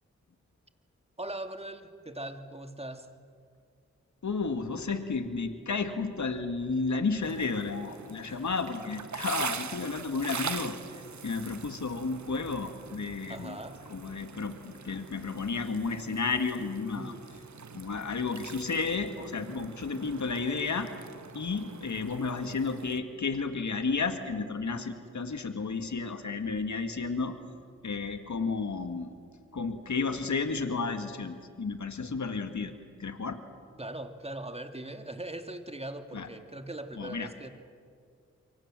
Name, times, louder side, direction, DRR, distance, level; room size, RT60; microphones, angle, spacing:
voice 1, 1.2-3.1 8.3-8.4 13.3-13.8 16.9-17.2 33.8-37.5, right 1 dB, 20° right, 7 dB, 2.5 m, -40 dB
voice 2, 4.2-10.8 11.2-13.6 13.9-17.1 17.7-20.9 21.3-27.4 27.8-29.1 29.5-32.7 33.0-33.4 36.1-36.3 37.0-37.3, left 4 dB, 70° left, 8 dB, 2.1 m, -32 dB
sound 1, 7.2-23.0, right 5 dB, 65° right, 1.4 m, -43 dB
28.0 x 24.0 x 7.7 m, 2.1 s
cardioid pair, 40°, 30 cm